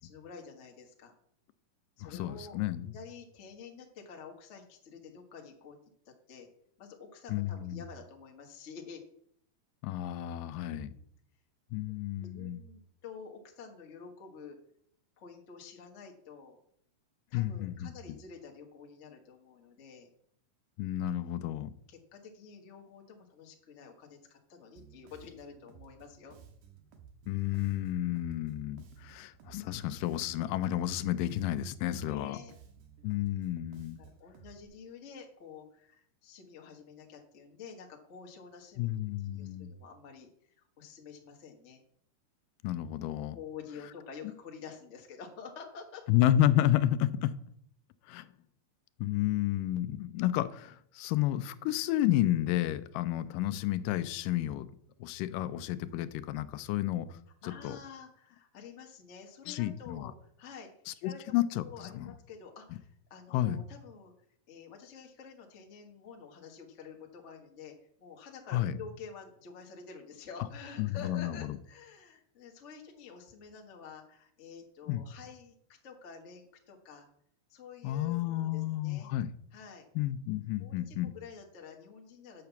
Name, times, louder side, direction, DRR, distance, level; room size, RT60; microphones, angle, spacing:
voice 1, 0.0-1.1 2.0-2.6 2.8-5.8 6.0-6.5 6.8-9.0 10.5-11.0 12.2-14.6 15.2-16.6 17.3-20.1 21.9-26.4 32.0-32.5 34.0-40.3 40.8-41.8 43.3-46.0 57.4-61.2 61.6-64.1 64.5-67.7 68.0-75.5 75.8-77.1 77.5-79.1 79.5-79.9 80.6-82.5, left 6 dB, 70° left, 0.6 m, -49 dB
voice 2, 2.0-2.9 7.3-7.8 9.8-10.9 11.7-12.6 17.3-17.9 20.8-21.7 27.3-32.4 33.0-34.0 38.8-39.7 42.6-43.4 46.1-47.3 48.1-48.3 49.0-54.7 55.0-57.8 59.5-60.1 60.9-62.1 63.3-63.6 68.5-68.8 70.8-71.6 74.9-75.1 77.8-79.3 80.0-81.1, left 13 dB, 85° left, 2.2 m, -31 dB
Bass guitar, 24.8-34.6, right 7 dB, 75° right, 2.7 m, -56 dB
7.6 x 5.8 x 6.9 m
omnidirectional pair, 3.8 m